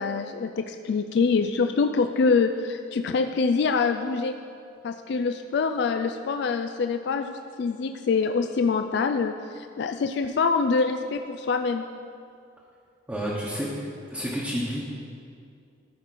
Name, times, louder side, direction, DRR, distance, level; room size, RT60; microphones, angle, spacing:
voice 1, 0.0-4.4 4.8-11.8, left 4 dB, 60° left, 7 dB, 0.3 m, -25 dB
voice 2, 13.1-13.7 14.1-14.8, equal, 10° right, -7 dB, 1.1 m, -29 dB
14.0 x 5.2 x 4.2 m, 2.4 s
head